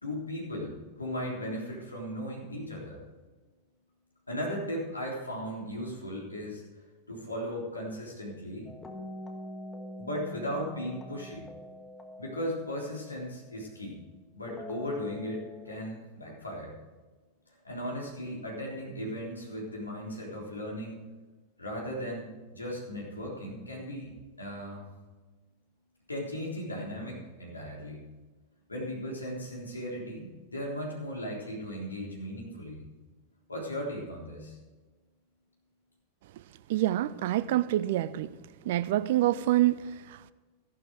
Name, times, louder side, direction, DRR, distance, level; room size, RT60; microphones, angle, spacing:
voice 1, 0.0-3.0 4.3-6.6 7.1-8.7 10.0-11.5 12.2-14.0 14.3-16.8 17.6-21.0 21.6-22.3 22.5-24.1 24.4-24.9 26.1-28.0 28.7-32.8 33.5-34.6, equal, 80° left, 3.6 m, -37 dB
sound 1, 8.7-13.8 14.5-15.7, left 1 dB, 10° left, 1.6 m, -44 dB
voice 2, 36.7-38.3 38.7-40.3, right 14 dB, 55° right, 0.5 m, -27 dB
13.5 x 11.5 x 4.7 m
figure-of-eight pair, 90°, 0 cm